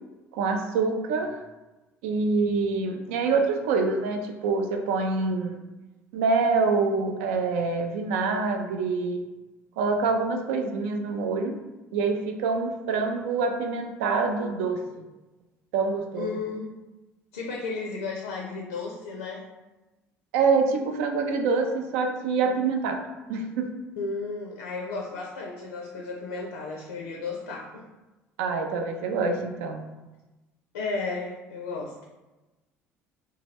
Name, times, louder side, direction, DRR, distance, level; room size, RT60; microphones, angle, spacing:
voice 1, 0.3-1.3 2.0-5.6 6.1-9.2 9.8-11.6 11.9-15.0 15.7-16.3 20.3-23.0 23.3-23.7 28.4-29.9, right 4 dB, 75° right, 5 dB, 0.4 m, -26 dB
voice 2, 16.1-16.8 17.3-19.4 24.0-27.8 30.7-31.9, left 4 dB, 80° left, 0 dB, 0.4 m, -33 dB
2.7 x 2.1 x 3.4 m, 1.1 s
hypercardioid pair, 60°, 8 cm